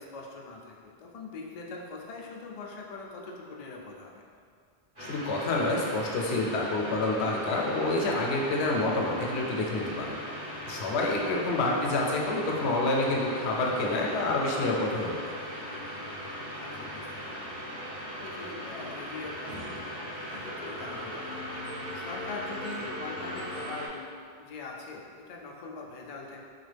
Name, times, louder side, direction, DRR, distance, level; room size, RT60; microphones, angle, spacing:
voice 1, 0.0-4.2 11.2-11.6 16.5-17.5 18.2-24.0 24.4-26.4, left 4 dB, 55° left, -1 dB, 0.4 m, -43 dB
voice 2, 5.0-10.2 10.7-15.3, left 2 dB, 90° left, -1 dB, 0.9 m, -28 dB
sound 1, 5.0-23.9, equal, 25° right, 1.0 m, -39 dB
4.0 x 2.4 x 3.2 m, 2.2 s
omnidirectional pair, 1.1 m